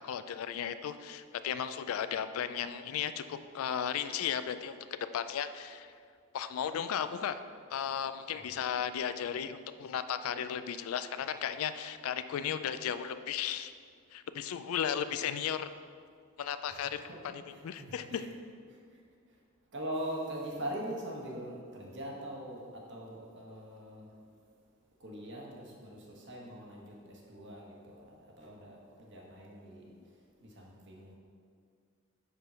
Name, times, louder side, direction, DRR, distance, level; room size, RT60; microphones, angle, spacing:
voice 1, 0.0-4.8 5.1-5.9 6.3-7.4 7.7-13.7 14.1-15.7 16.4-17.0 17.6-18.0, left 8 dB, 75° left, 12 dB, 0.3 m, -35 dB
voice 2, 16.7-18.4 19.7-24.1 25.0-29.9 30.4-31.2, right 1 dB, 60° right, -2 dB, 1.2 m, -42 dB
5.1 x 4.5 x 5.6 m, 2.1 s
head